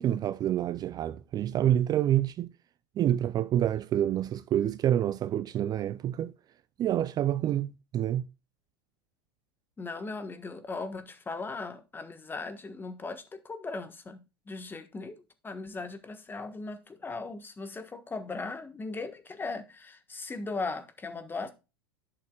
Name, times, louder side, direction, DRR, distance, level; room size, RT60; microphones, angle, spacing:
voice 1, 0.0-2.5 3.0-6.3 6.8-8.2, right 11 dB, 30° right, 0.4 m, -27 dB
voice 2, 9.8-15.1 15.4-21.5, left 3 dB, 15° left, 1.3 m, -38 dB
11.5 x 6.5 x 2.3 m
hypercardioid pair, 100°, 13 cm